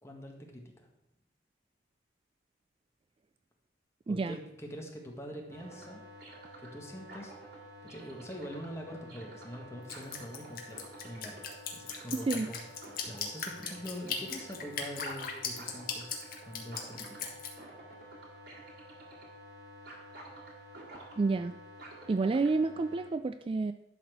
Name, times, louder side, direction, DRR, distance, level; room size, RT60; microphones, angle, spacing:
voice 1, 0.0-0.9 4.1-6.0 6.6-7.3 7.8-12.6 13.0-17.3, equal, 15° left, 0 dB, 1.7 m, -44 dB
voice 2, 4.1-4.4 12.3-12.5 21.2-21.5 22.1-23.7, right 3 dB, 30° right, 10 dB, 0.3 m, -29 dB
sound 1, 5.5-23.1, right 1 dB, 70° right, 2.8 m, -50 dB
Drip, 9.9-17.5, left 6 dB, 55° left, 1.5 m, -37 dB
11.5 x 4.3 x 6.8 m, 0.86 s
head